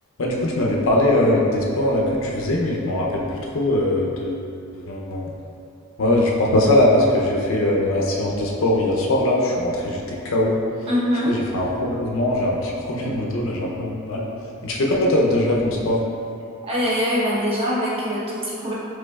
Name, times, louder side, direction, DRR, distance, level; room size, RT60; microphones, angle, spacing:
voice 1, 0.2-3.2 3.5-4.4 4.7-5.3 6.0-10.6 11.3-14.2 14.6-16.0, left 1 dB, 65° left, -2 dB, 0.6 m, -21 dB
voice 2, 10.9-11.4 16.6-18.7, equal, 25° right, -7 dB, 0.8 m, -23 dB
5.2 x 3.7 x 2.3 m, 2.6 s
head